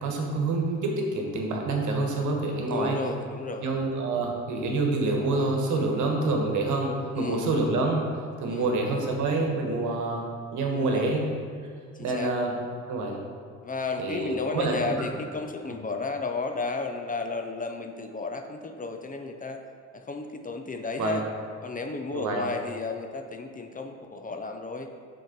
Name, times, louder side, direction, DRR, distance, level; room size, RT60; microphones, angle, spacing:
voice 1, 0.0-3.0 3.6-8.0 8.4-10.2 10.5-11.2 12.0-12.5 12.9-13.2 14.0-14.9 21.0-21.2 22.1-22.4, right 3 dB, 75° right, 1 dB, 1.3 m, -27 dB
voice 2, 2.7-3.7 7.1-7.6 8.5-8.8 10.7-11.1 11.9-12.3 13.6-19.6 19.9-21.2 21.6-24.9, left 3 dB, 25° left, 5 dB, 0.6 m, -33 dB
6.4 x 4.4 x 5.1 m, 2.1 s
cardioid pair, 90°, 30 cm